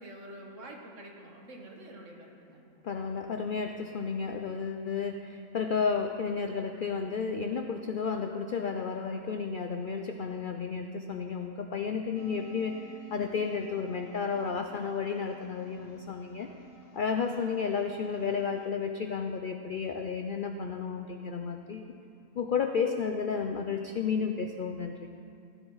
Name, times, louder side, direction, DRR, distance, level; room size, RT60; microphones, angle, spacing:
voice 1, 0.0-2.6 15.7-15.9, right 1 dB, 60° right, 0 dB, 1.8 m, -47 dB
voice 2, 2.8-16.5 16.9-21.9 22.4-25.1, left 5 dB, 70° left, 6 dB, 0.4 m, -32 dB
sound 1, 12.2-18.7, left 3 dB, 50° left, 1.1 m, -54 dB
16.0 x 10.0 x 4.0 m, 2.5 s
omnidirectional pair, 1.5 m